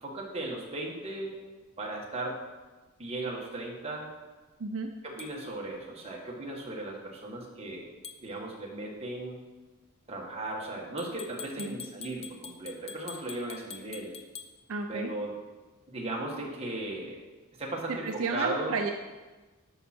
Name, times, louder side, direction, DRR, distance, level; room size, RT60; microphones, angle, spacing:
voice 1, 0.0-1.4 1.8-2.4 3.0-4.1 5.0-7.9 8.2-9.4 10.1-14.1 14.9-15.3 15.9-17.2 17.6-18.8, right 2 dB, 25° right, -2 dB, 1.7 m, -36 dB
voice 2, 4.6-4.9 11.6-11.8 14.7-15.1 17.9-18.9, right 4 dB, 65° right, 5 dB, 0.6 m, -32 dB
sound 1, 5.2-5.3 8.0-8.2 11.0-14.5, left 7 dB, 30° left, 0.7 m, -45 dB
10.5 x 6.3 x 4.4 m, 1.2 s
head